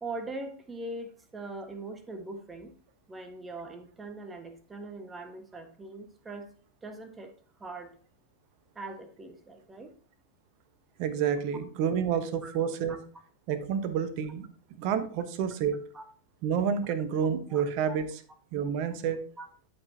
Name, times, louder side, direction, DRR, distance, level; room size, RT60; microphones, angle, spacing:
voice 1, 0.0-2.7 3.1-6.5 6.8-7.3 7.6-7.9 8.7-9.9 12.4-12.5 12.9-13.0 15.9-16.1 17.5-17.6 17.9-18.0 19.4-19.5, right 2 dB, 15° right, 6 dB, 1.5 m, -41 dB
voice 2, 11.0-13.0 13.5-14.5 14.7-15.8 16.4-18.2 18.5-19.2, right 7 dB, 45° right, 10 dB, 1.1 m, -29 dB
12.0 x 6.2 x 2.8 m, 0.43 s
figure-of-eight pair, 90°, 0 cm